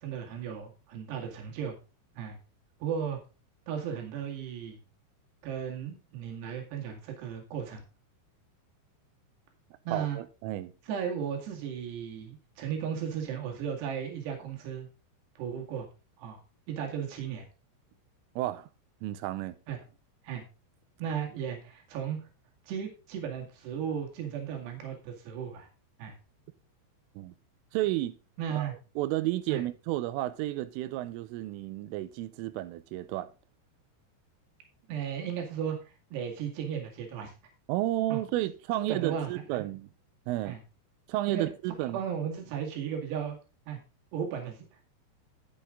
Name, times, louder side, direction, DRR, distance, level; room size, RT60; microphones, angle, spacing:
voice 1, 0.0-1.7 2.2-2.4 2.8-3.2 3.7-4.8 5.4-7.8 9.9-10.2 10.9-14.9 15.4-15.9 16.2-16.4 16.7-17.5 19.7-19.8 20.2-20.4 21.0-22.2 22.7-25.7 26.0-26.2 28.4-28.8 29.5-29.6 34.9-35.8 36.1-37.3 38.1-38.2 38.9-39.6 40.5-40.6 41.3-41.5 41.9-43.4 43.7-43.8 44.1-44.7, right 8 dB, 65° right, 3.9 m, -35 dB
voice 2, 9.9-10.7 18.4-18.7 19.0-19.6 27.2-27.3 27.7-28.2 28.6-33.3 37.7-39.9 40.3-40.6 41.1-42.0, right 15 dB, 85° right, 3.3 m, -32 dB
10.0 x 8.5 x 3.7 m
omnidirectional pair, 5.7 m